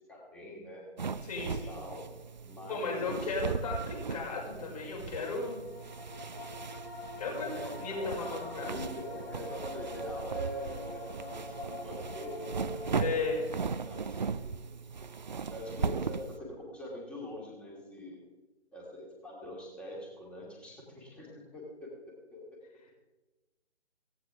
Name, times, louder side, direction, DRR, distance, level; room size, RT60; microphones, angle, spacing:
voice 1, 0.1-0.8 1.4-2.1 2.4-3.3 7.2-12.9 13.8-15.1 15.5-18.2 18.7-22.6, equal, 5° left, -3 dB, 2.5 m, -44 dB
sound 1, 1.0-16.4, right 5 dB, 40° right, 0.7 m, -38 dB
voice 2, 1.2-1.7 2.7-5.6 7.2-7.5 7.8-8.8 12.9-13.5, left 3 dB, 35° left, -1 dB, 6.1 m, -35 dB
sound 2, 5.5-13.7, left 2 dB, 60° left, 3.7 m, -44 dB
17.0 x 16.5 x 3.6 m, 1.1 s
figure-of-eight pair, 150°, 34 cm